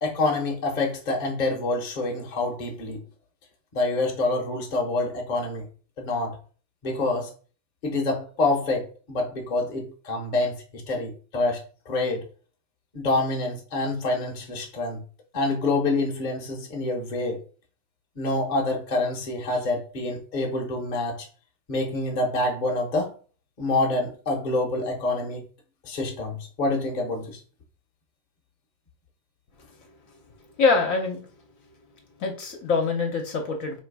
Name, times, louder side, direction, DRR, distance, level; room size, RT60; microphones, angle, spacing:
voice 1, 0.0-3.0 3.7-5.7 6.0-6.4 6.8-7.3 7.8-12.2 12.9-15.0 15.3-17.4 18.2-21.2 21.7-23.1 23.6-25.4 25.8-27.4, left 2 dB, 35° left, 0.9 m, -27 dB
voice 2, 30.6-31.2 32.2-33.8, left 4 dB, 65° left, 1.2 m, -24 dB
3.1 x 3.0 x 4.6 m
omnidirectional pair, 1.6 m